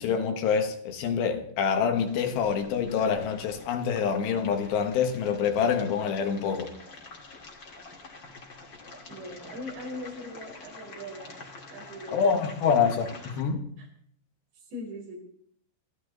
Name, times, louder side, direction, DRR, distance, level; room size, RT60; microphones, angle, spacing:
voice 1, 0.0-6.7 12.1-13.7, left 6 dB, 75° left, 3.6 m, -26 dB
sound 1, 2.0-13.4, left 3 dB, 35° left, 2.2 m, -47 dB
voice 2, 9.1-11.4 11.7-12.3 13.8-13.9 14.5-15.2, left 1 dB, 80° right, 6.6 m, -40 dB
24.5 x 14.5 x 4.0 m
omnidirectional pair, 5.0 m